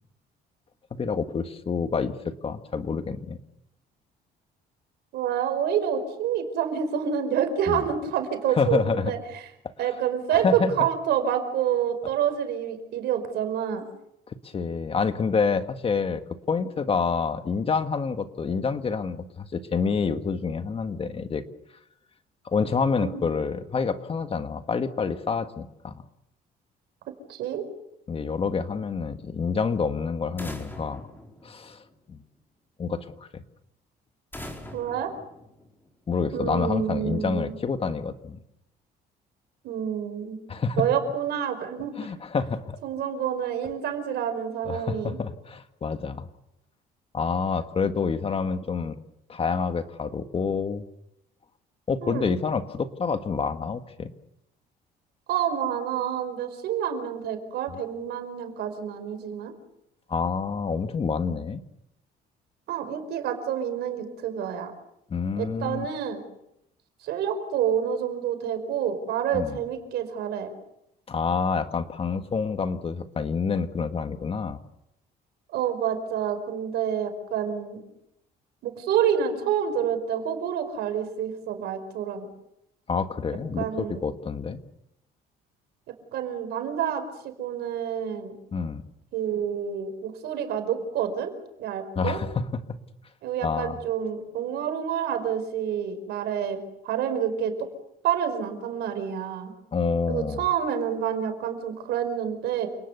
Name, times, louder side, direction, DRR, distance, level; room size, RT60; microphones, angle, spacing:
voice 1, 0.9-3.4 7.7-7.8 8.5-9.1 10.3-10.7 14.3-16.2 16.5-21.4 22.5-26.0 28.1-31.0 31.4-31.8 32.1-32.2 32.8-33.1 33.3-33.4 36.1-38.4 40.5-40.8 42.0-42.8 44.7-46.3 47.1-49.0 49.3-50.9 51.9-54.1 60.1-61.6 65.1-65.9 69.3-69.6 71.1-74.6 82.9-84.6 88.5-88.8 92.0-92.6 93.4-93.8 99.7-100.4, left 5 dB, 35° left, 9 dB, 1.7 m, -27 dB
voice 2, 5.1-9.4 9.8-13.8 23.0-23.3 27.3-27.7 34.7-35.1 36.3-37.6 39.6-40.4 40.8-42.0 42.8-45.2 52.0-52.3 55.3-59.5 62.7-64.7 65.4-66.2 67.0-70.5 75.5-77.8 78.6-82.3 83.6-84.0 86.1-88.3 89.1-91.3 91.6-92.2 93.2-96.6 96.8-97.5 98.0-99.5 100.1-102.7, right 8 dB, 75° right, 7 dB, 5.1 m, -28 dB
sound 1, 30.4-32.2 34.3-36.1, left 1 dB, 10° left, 4.6 m, -42 dB
29.0 x 19.0 x 6.9 m, 0.82 s
cardioid pair, 110°, 17 cm